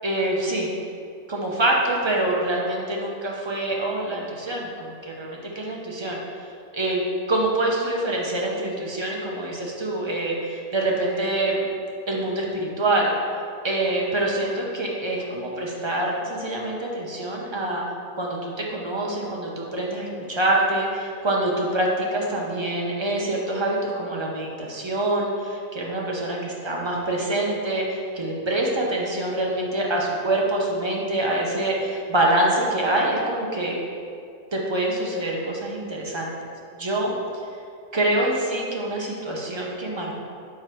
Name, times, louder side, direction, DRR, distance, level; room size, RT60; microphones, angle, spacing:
voice 1, 0.0-0.7 1.3-6.2 6.7-7.0 7.3-11.7 12.1-13.1 13.6-17.8 18.2-33.8 34.5-36.3 36.8-37.1 37.9-40.2, right 1 dB, 30° right, -2 dB, 0.5 m, -25 dB
5.9 x 4.6 x 4.5 m, 2.4 s
omnidirectional pair, 1.6 m